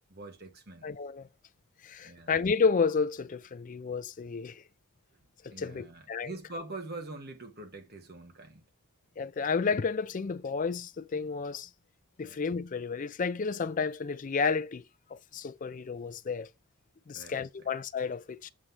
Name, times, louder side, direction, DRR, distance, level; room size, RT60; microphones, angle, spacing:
voice 1, 0.1-0.9 2.0-2.3 5.5-8.6 12.2-12.4 17.1-17.7, right 2 dB, 45° right, 1.3 m, -44 dB
voice 2, 0.8-1.3 1.8-4.6 5.4-6.3 9.2-11.7 12.2-14.8 15.1-16.5 17.1-18.5, left 5 dB, 35° left, 0.4 m, -31 dB
7.5 x 3.2 x 5.4 m
head